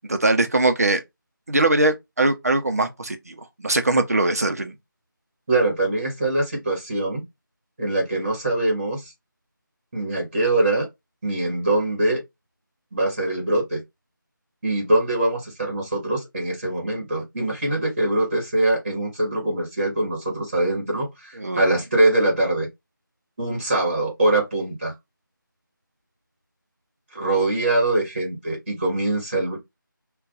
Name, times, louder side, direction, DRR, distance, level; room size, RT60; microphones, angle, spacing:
voice 1, 0.1-1.0 1.5-4.8 21.4-21.6, right 2 dB, 45° right, 0.5 m, -21 dB
voice 2, 5.5-7.2 7.8-9.1 9.9-10.9 11.2-12.2 12.9-13.8 14.6-22.7 23.4-24.9 27.1-29.6, right 2 dB, 25° right, 1.0 m, -23 dB
2.5 x 2.2 x 3.8 m
figure-of-eight pair, 165°, 11 cm